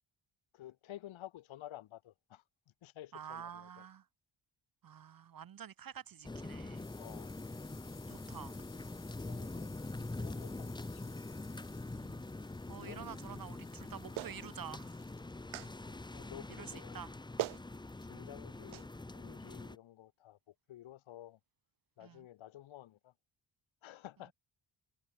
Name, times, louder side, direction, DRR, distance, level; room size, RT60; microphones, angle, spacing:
voice 1, 0.5-3.9 7.0-7.4 9.2-9.8 10.1-11.2 12.8-13.1 15.5-17.0 17.7-21.4 22.0-23.1 23.8-24.3, left 13 dB, 75° left, 0.8 m, -53 dB
voice 2, 3.1-4.0 4.8-6.9 8.1-8.5 11.9-12.2 12.7-15.0 16.6-17.1 22.0-22.3, right 8 dB, 45° right, 0.8 m, -48 dB
sound 1, 6.0-17.3, left 6 dB, 40° left, 2.2 m, -60 dB
sound 2, 6.2-19.8, left 2 dB, 10° left, 0.7 m, -44 dB
Clapping, 14.2-14.4 15.5-15.7 17.0-17.1 17.4-17.6 18.7-18.9, right 16 dB, 80° right, 0.6 m, -38 dB
wide cardioid pair, 125°, 47 cm